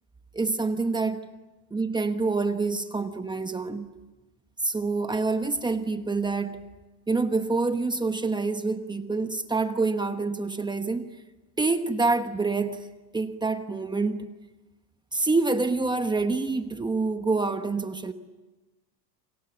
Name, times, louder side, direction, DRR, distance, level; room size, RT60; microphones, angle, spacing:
voice 1, 0.3-1.2 1.7-3.9 4.6-6.6 7.1-11.1 11.6-12.9 13.1-14.3 15.1-18.1, right 3 dB, 10° right, 1.0 m, -27 dB
30.0 x 27.0 x 7.2 m
cardioid pair, 160°, 49 cm